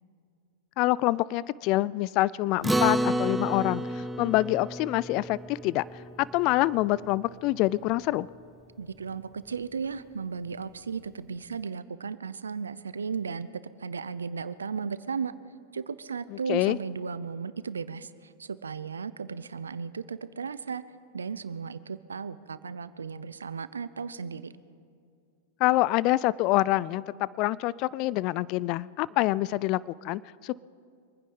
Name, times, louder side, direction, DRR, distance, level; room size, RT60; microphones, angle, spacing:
voice 1, 0.8-5.8 6.2-8.3 16.5-16.8 25.6-30.5, left 17 dB, 50° left, 21 dB, 0.4 m, -26 dB
Acoustic guitar, 2.6-7.3, right 1 dB, 5° right, 0.6 m, -31 dB
voice 2, 8.8-13.5 13.8-15.3 15.7-20.8 21.1-24.5, right 5 dB, 90° right, 15 dB, 0.6 m, -35 dB
25.0 x 9.9 x 5.4 m, 2.3 s
hypercardioid pair, 105°, 0 cm